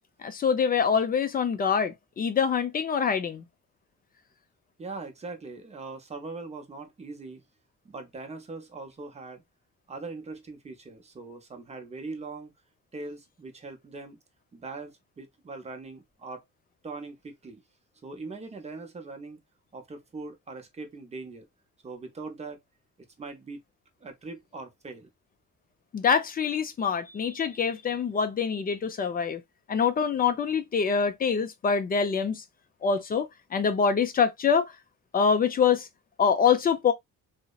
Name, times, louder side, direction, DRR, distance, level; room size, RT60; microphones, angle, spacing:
voice 1, 0.2-3.5 25.9-29.4 29.7-32.4 32.8-34.7 35.1-35.9 36.2-36.9, left 6 dB, 30° left, 0.4 m, -25 dB
voice 2, 4.8-7.4 7.8-9.4 9.9-12.5 12.9-14.2 14.5-16.4 16.8-17.6 18.0-19.4 19.7-21.4 21.8-22.6 23.2-23.6 24.0-25.1, right 3 dB, 20° right, 0.6 m, -41 dB
2.7 x 2.0 x 2.3 m
cardioid pair, 125°, 30 cm